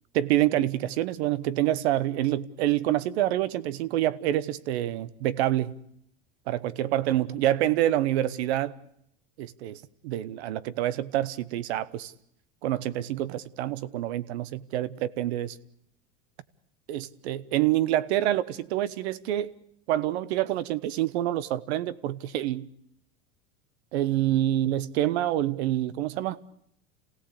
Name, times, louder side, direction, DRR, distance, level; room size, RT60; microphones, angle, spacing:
voice 1, 0.1-5.7 6.5-8.7 9.4-12.1 12.6-15.5 16.9-19.5 19.9-22.7 23.9-26.4, right 13 dB, 85° right, 1.2 m, -27 dB
27.5 x 17.0 x 8.4 m
supercardioid pair, 130°, 32 cm